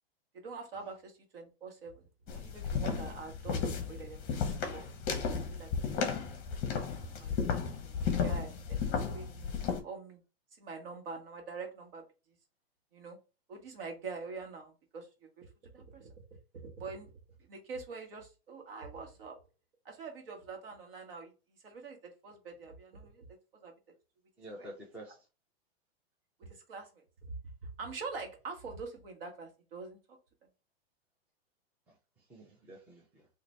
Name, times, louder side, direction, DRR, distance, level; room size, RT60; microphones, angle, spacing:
voice 1, 0.3-2.1 2.3-4.9 5.3-6.2 7.1-9.6 9.8-10.2 10.6-12.0 12.9-13.2 13.5-15.5 15.7-16.1 16.6-17.1 17.5-19.4 19.8-21.3 21.6-23.3 23.6-23.7 24.6-24.7 26.4-27.0 27.6-30.0, right 4 dB, 60° right, 3 dB, 1.4 m, -45 dB
sound 1, 2.3-9.8, left 6 dB, 25° left, 0.7 m, -34 dB
voice 2, 24.4-25.3 31.9-33.3, right 1 dB, 5° right, -2 dB, 0.4 m, -50 dB
3.8 x 2.5 x 3.1 m, 0.30 s
hypercardioid pair, 150°, 32 cm